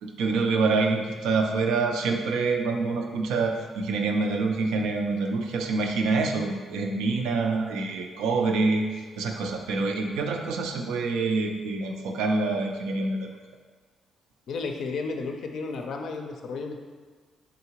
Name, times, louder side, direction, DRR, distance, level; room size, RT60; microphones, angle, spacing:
voice 1, 0.0-8.8 9.2-13.3, right 3 dB, 90° right, 3 dB, 0.4 m, -26 dB
voice 2, 14.5-16.8, left 4 dB, 70° left, 4 dB, 0.4 m, -33 dB
3.8 x 3.6 x 2.9 m, 1.5 s
cardioid pair, 90°, 0 cm